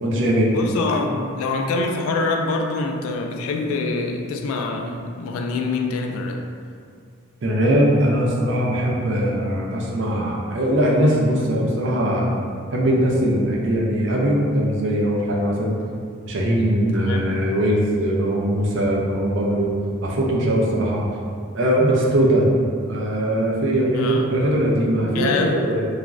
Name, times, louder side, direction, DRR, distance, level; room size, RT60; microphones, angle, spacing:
voice 1, 0.0-0.5 7.4-12.3 12.7-15.8 16.3-19.7 20.0-21.0 21.5-22.5 22.8-25.8, right 1 dB, 55° right, -3 dB, 0.4 m, -20 dB
voice 2, 0.5-6.4 16.9-17.4 23.9-24.4 25.1-25.6, left 3 dB, 85° left, 3 dB, 0.3 m, -25 dB
3.0 x 2.4 x 2.4 m, 2.2 s
head